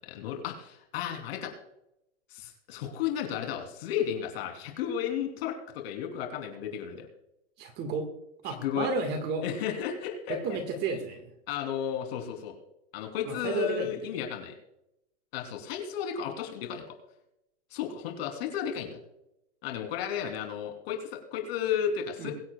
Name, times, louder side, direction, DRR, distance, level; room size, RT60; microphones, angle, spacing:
voice 1, 0.1-1.5 2.3-7.1 8.5-8.9 9.4-10.4 11.5-12.6 12.9-14.5 15.3-16.8 17.7-19.0 19.6-22.3, left 9 dB, 55° left, 3 dB, 3.3 m, -33 dB
voice 2, 7.6-8.1 8.4-9.4 10.3-11.3 13.3-14.1 22.2-22.3, right 4 dB, 30° right, 5 dB, 1.7 m, -32 dB
23.0 x 8.6 x 2.3 m, 0.84 s
supercardioid pair, 150°, 36 cm